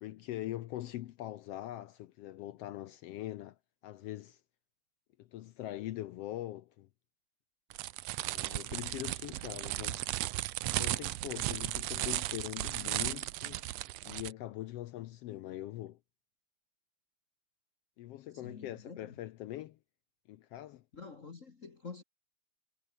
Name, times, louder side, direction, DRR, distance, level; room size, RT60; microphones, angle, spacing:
voice 1, 0.0-3.6 3.8-4.4 5.2-6.9 8.2-10.0 10.7-13.7 14.0-16.0 18.0-19.8 20.3-20.8, left 14 dB, 75° left, 1.4 m, -42 dB
sound 1, 7.7-14.3, right 16 dB, 75° right, 1.6 m, -35 dB
voice 2, 18.3-19.1 20.9-22.0, left 5 dB, 40° left, 1.2 m, -48 dB
omnidirectional pair, 3.5 m